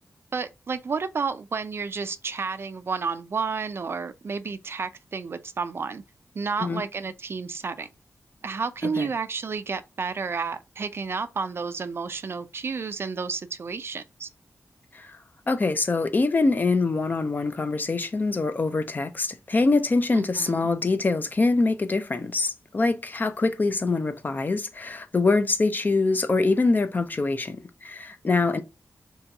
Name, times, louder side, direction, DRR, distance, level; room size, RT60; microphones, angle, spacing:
voice 1, 0.3-6.0 6.3-7.9 8.4-14.3 20.1-20.6, right 5 dB, 50° right, 0.3 m, -31 dB
voice 2, 15.5-27.6 27.8-28.6, left 3 dB, 35° left, 0.4 m, -24 dB
2.9 x 2.8 x 3.4 m
wide cardioid pair, 100°, 5 cm